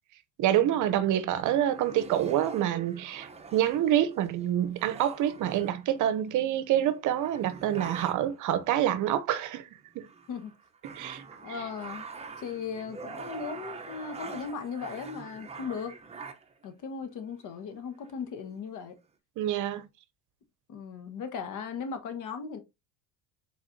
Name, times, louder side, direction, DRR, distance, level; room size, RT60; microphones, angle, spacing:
voice 1, 0.4-9.7 9.9-10.1 10.9-11.2 19.4-19.8, right 11 dB, 55° right, 0.7 m, -27 dB
sound 1, 1.3-6.3 6.8-6.9 7.2-8.4 9.1-9.5 9.9-16.6 17.5-17.6 17.9-18.6, right 5 dB, 15° right, 0.7 m, -44 dB
voice 2, 11.4-12.1 12.4-15.9 16.6-18.9 20.7-22.6, left 6 dB, 55° left, 1.2 m, -37 dB
4.8 x 4.2 x 2.6 m
supercardioid pair, 95°, 37 cm